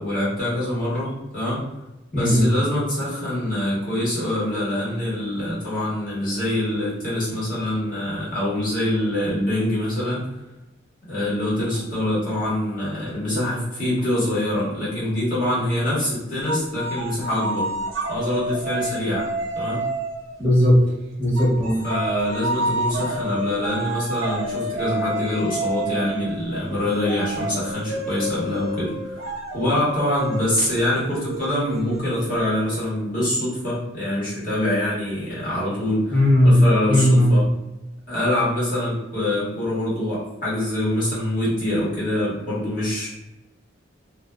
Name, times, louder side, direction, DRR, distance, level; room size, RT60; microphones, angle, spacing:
voice 1, 0.0-1.6 2.1-10.2 11.1-17.7 18.1-19.3 19.5-19.8 21.8-29.3 29.5-37.4 38.1-43.1, left 1 dB, 45° left, -9 dB, 1.3 m, -25 dB
voice 2, 2.1-2.5 20.4-20.8 21.2-21.8 36.1-36.6 36.9-37.3, left 1 dB, 5° left, -8 dB, 0.9 m, -16 dB
sound 1, 16.5-20.4 21.4-32.7, right 1 dB, 85° right, 0.5 m, -29 dB
2.5 x 2.1 x 2.2 m, 0.99 s
head